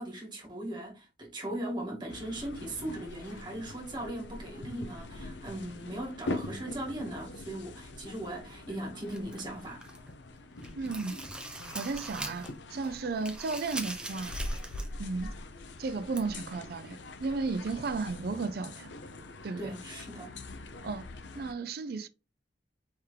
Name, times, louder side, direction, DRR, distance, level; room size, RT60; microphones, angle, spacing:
voice 1, 0.0-9.9 19.6-20.3, right 1 dB, 25° right, 2.0 m, -38 dB
sound 1, 2.1-21.5, left 2 dB, 80° left, 0.6 m, -43 dB
sound 2, 9.1-10.1 10.5-12.6 12.8-15.0 15.3-15.4 16.1-16.2, right 2 dB, 5° right, 0.7 m, -41 dB
voice 2, 10.8-11.1 11.7-14.4 15.0-15.3 15.8-18.9 19.4-19.7 20.8-21.1 21.3-22.1, right 4 dB, 55° right, 0.4 m, -34 dB
4.4 x 3.6 x 3.2 m
head